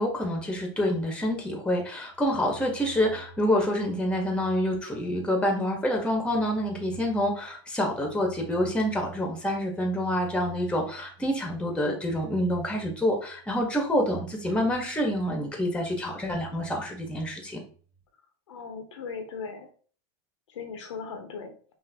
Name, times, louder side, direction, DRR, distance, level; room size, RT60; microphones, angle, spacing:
voice 1, 0.0-17.6, equal, 5° left, 2 dB, 1.4 m, -27 dB
voice 2, 18.5-19.7 20.5-21.5, left 5 dB, 85° left, 5 dB, 1.2 m, -38 dB
5.6 x 2.9 x 2.9 m, 0.42 s
hypercardioid pair, 115°, 15 cm